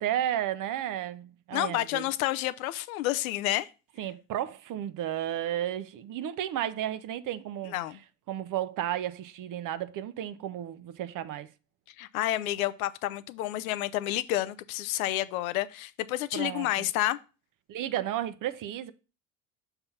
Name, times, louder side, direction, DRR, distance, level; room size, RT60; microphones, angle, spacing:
voice 1, 0.0-2.1 4.0-7.7 8.3-11.5 16.3-16.9 17.7-18.9, right 11 dB, 50° right, 0.7 m, -33 dB
voice 2, 1.5-3.7 7.7-8.0 12.0-17.2, left 15 dB, 90° left, 0.6 m, -30 dB
5.8 x 3.4 x 5.6 m
supercardioid pair, 85°, 41 cm